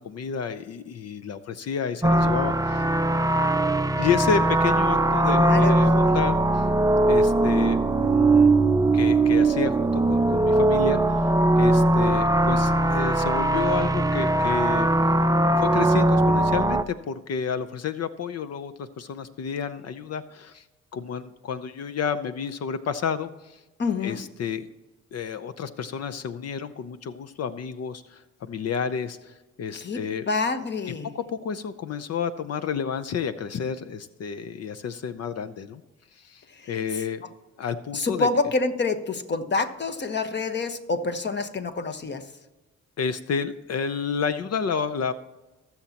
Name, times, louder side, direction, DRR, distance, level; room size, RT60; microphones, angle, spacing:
voice 1, 0.0-2.9 4.0-6.7 7.1-8.5 8.9-11.3 11.6-14.9 15.6-20.6 20.9-23.6 24.0-24.7 25.1-30.3 31.1-35.8 36.1-37.2 37.6-38.3 43.0-45.1, left 6 dB, 55° left, 12 dB, 0.7 m, -30 dB
sound 1, 2.0-16.8, right 2 dB, 10° right, 0.5 m, -20 dB
voice 2, 5.2-6.1 23.8-24.2 29.7-31.1 36.6-36.7 37.9-42.3, left 3 dB, 35° left, 9 dB, 1.2 m, -27 dB
21.0 x 7.2 x 2.9 m, 1.1 s
cardioid pair, 90°, 30 cm